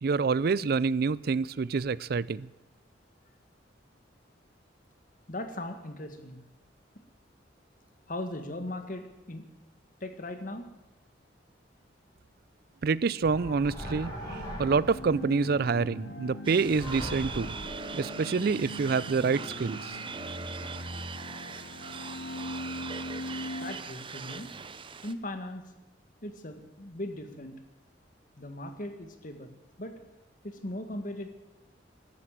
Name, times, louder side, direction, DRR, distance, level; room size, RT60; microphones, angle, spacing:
voice 1, 0.0-2.5 12.8-14.1 14.6-17.5 17.9-20.0, right 4 dB, 55° right, 21 dB, 0.4 m, -27 dB
voice 2, 5.3-6.4 8.1-9.4 10.0-10.7 23.6-24.5 25.0-25.7 26.2-27.6 28.4-29.5 29.8-30.0 30.4-31.3, left 1 dB, 45° left, 7 dB, 1.8 m, -38 dB
sound 1, 13.2-15.2 16.6-18.0, equal, 20° left, 6.6 m, -39 dB
sound 2, 14.6-23.7, left 1 dB, 70° left, 2.8 m, -41 dB
sound 3, 16.4-25.1, right 5 dB, 30° right, 0.7 m, -41 dB
14.0 x 12.5 x 7.6 m, 1.0 s
head